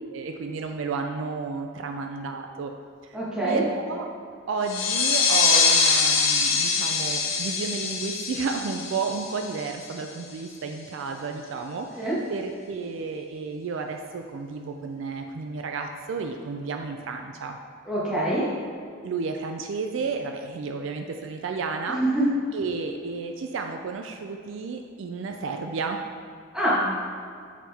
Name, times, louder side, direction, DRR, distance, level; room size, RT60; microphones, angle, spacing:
voice 1, 0.1-2.7 3.0-3.2 3.4-4.1 4.5-17.6 19.0-22.0 22.5-26.0, right 4 dB, 65° right, 4 dB, 0.4 m, -32 dB
voice 2, 3.1-3.6 12.0-12.2 17.9-18.5 21.9-22.3 26.5-26.9, right 1 dB, 5° right, -9 dB, 1.5 m, -24 dB
sound 1, 4.6-10.0, left 5 dB, 80° left, 0.8 m, -24 dB
7.2 x 4.3 x 3.5 m, 2.2 s
head